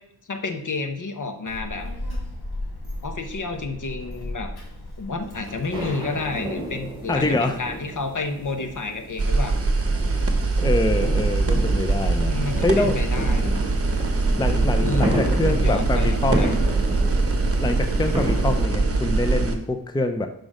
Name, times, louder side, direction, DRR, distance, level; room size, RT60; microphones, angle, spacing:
voice 1, 0.3-1.9 3.0-4.5 5.0-9.6 12.2-13.6 14.8-16.5, left 3 dB, 50° left, 6 dB, 1.0 m, -30 dB
Child speech kid speaking, 1.5-6.7, left 1 dB, 75° left, 2.1 m, -35 dB
sound 1, 5.7-18.6, right 1 dB, 10° right, 2.1 m, -32 dB
voice 2, 7.1-7.6 10.6-12.3 12.6-13.0 14.4-16.6 17.6-20.3, left 2 dB, 10° left, 7 dB, 0.5 m, -25 dB
sound 2, 9.2-19.5, right 3 dB, 35° right, 1.0 m, -22 dB
6.1 x 5.1 x 4.9 m, 0.79 s
wide cardioid pair, 80°, 38 cm